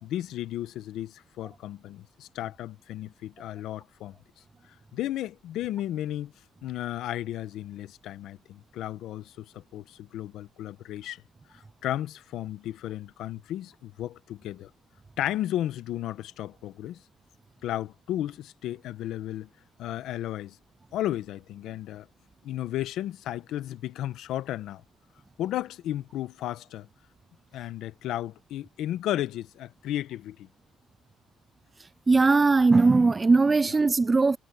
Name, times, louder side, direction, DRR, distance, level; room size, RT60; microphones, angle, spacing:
voice 1, 0.0-4.2 4.9-6.3 6.6-11.2 11.5-14.7 15.2-17.0 17.6-19.5 19.8-20.6 20.9-22.1 22.4-24.8 25.4-26.9 27.5-30.5, left 13 dB, 75° left, 1.1 m, -34 dB
voice 2, 32.1-34.4, right 3 dB, 20° right, 0.4 m, -20 dB
cardioid pair, 105°, 0 cm